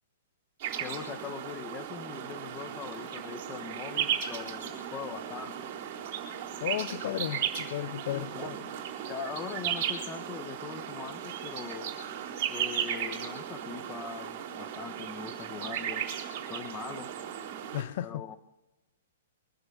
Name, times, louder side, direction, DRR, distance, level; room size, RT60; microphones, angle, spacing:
sound 1, 0.6-17.8, right 9 dB, 35° right, 3.9 m, -36 dB
voice 1, 0.8-5.7 8.1-8.6 9.1-11.9 12.5-16.0 16.5-17.1 18.0-18.4, left 7 dB, 20° left, 11 dB, 1.1 m, -41 dB
voice 2, 6.6-8.3 17.7-18.2, left 13 dB, 50° left, 17 dB, 0.5 m, -34 dB
24.0 x 8.0 x 7.0 m, 1.0 s
hypercardioid pair, 160°, 0 cm